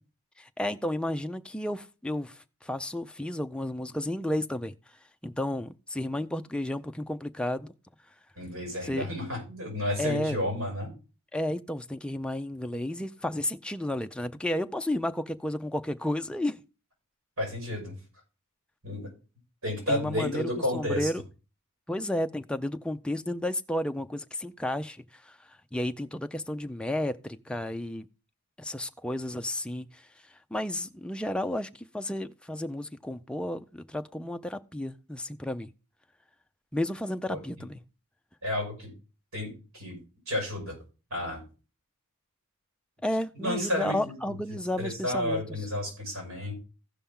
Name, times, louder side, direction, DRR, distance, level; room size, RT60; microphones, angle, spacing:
voice 1, 0.4-4.8 5.2-7.7 8.8-9.1 10.0-10.5 11.3-16.6 19.9-21.2 21.9-28.1 28.6-30.0 30.5-35.7 36.7-37.8 43.0-45.4, left 1 dB, 5° left, 0.4 m, -32 dB
voice 2, 8.4-10.9 17.4-17.9 18.8-19.1 19.6-21.1 37.3-37.4 38.4-38.9 39.3-40.0 40.3-40.8 41.1-41.4 43.3-46.5, left 1 dB, 75° right, 6.2 m, -32 dB
15.0 x 5.7 x 3.6 m
head